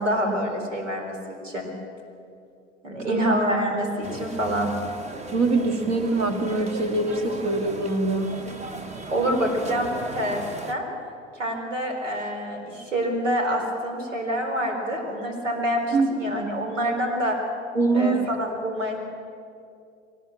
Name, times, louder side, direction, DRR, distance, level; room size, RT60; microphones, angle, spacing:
voice 1, 0.0-1.7 2.8-4.7 9.1-10.4 10.7-10.8 11.3-17.4 17.9-19.0, equal, 80° right, 2 dB, 4.3 m, -26 dB
voice 2, 3.1-3.7 5.3-8.3 15.9-16.1 17.7-18.3, right 3 dB, 45° right, 5 dB, 3.0 m, -24 dB
sound 1, 4.0-10.7, right 3 dB, 20° right, 1.3 m, -37 dB
23.0 x 19.0 x 7.5 m, 2.5 s
figure-of-eight pair, 85°, 37 cm